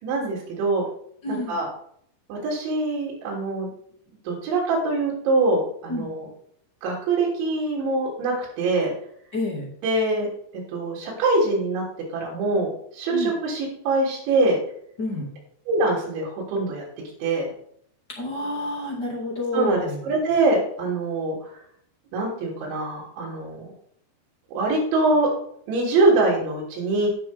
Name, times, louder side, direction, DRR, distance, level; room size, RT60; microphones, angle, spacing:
voice 1, 0.0-0.8 1.3-1.7 2.3-3.7 4.3-6.3 6.8-8.9 9.8-10.3 10.7-11.8 12.1-14.6 15.7-16.8 17.2-17.5 19.5-21.5 22.1-23.7 24.5-25.3 25.7-27.1, right 2 dB, 70° right, -3 dB, 5.3 m, -23 dB
voice 2, 1.2-1.6 5.9-6.1 9.3-9.7 13.1-13.3 15.0-15.3 18.2-20.0, left 2 dB, 45° left, -2 dB, 1.4 m, -28 dB
17.0 x 6.2 x 3.5 m, 0.66 s
omnidirectional pair, 5.6 m